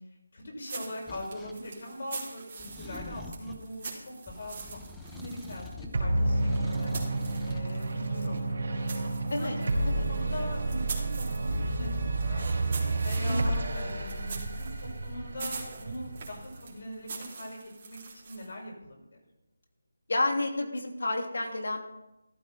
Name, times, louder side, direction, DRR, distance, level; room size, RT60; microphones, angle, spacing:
voice 1, 0.3-4.8 5.1-6.9 7.5-8.4 9.4-12.5 13.0-19.2, left 1 dB, 50° left, -2 dB, 6.1 m, -41 dB
sound 1, 0.6-8.0 8.4-18.6, right 4 dB, 35° right, 3.7 m, -44 dB
sound 2, 1.1-1.6 2.6-3.7 4.3-6.0 6.3-7.7, left 2 dB, 5° left, 0.7 m, -45 dB
sound 3, 5.9-16.7, right 2 dB, 55° right, 4.2 m, -30 dB
voice 2, 13.3-14.0 20.1-21.8, left 2 dB, 75° left, 3 dB, 3.0 m, -31 dB
14.5 x 13.0 x 4.4 m, 0.92 s
figure-of-eight pair, 170°, 0 cm